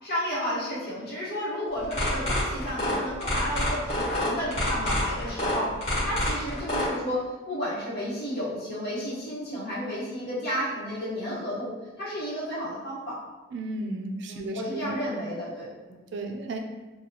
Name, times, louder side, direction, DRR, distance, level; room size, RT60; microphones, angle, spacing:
voice 1, 0.0-13.2 14.3-15.8, equal, 55° left, -8 dB, 1.1 m, -32 dB
sound 1, 1.8-6.9, left 1 dB, 35° left, 1.3 m, -27 dB
voice 2, 13.5-15.0 16.1-16.6, right 2 dB, 60° right, 4 dB, 0.4 m, -34 dB
3.0 x 2.3 x 2.8 m, 1.2 s
head